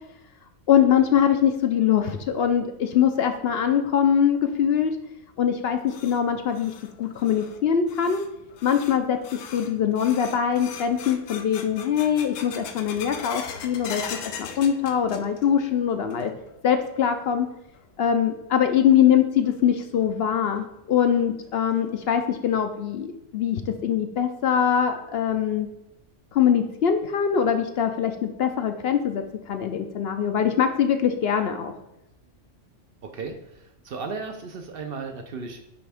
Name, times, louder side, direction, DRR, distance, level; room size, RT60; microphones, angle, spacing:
voice 1, 0.7-5.0 5.4-8.2 8.6-14.0 14.4-16.3 16.6-17.5 18.0-25.7 26.3-31.7, left 8 dB, 60° left, 7 dB, 0.7 m, -23 dB
sound 1, 5.5-15.6 15.9-16.5 16.9-17.0 17.7-17.8 19.4-19.5 20.0-20.1 20.6-20.7 21.1-21.2 21.8-22.1, left 7 dB, 85° left, 1.0 m, -40 dB
voice 2, 33.0-35.6, right 4 dB, 60° right, 5 dB, 0.7 m, -35 dB
9.2 x 3.4 x 3.4 m, 0.89 s
omnidirectional pair, 1.3 m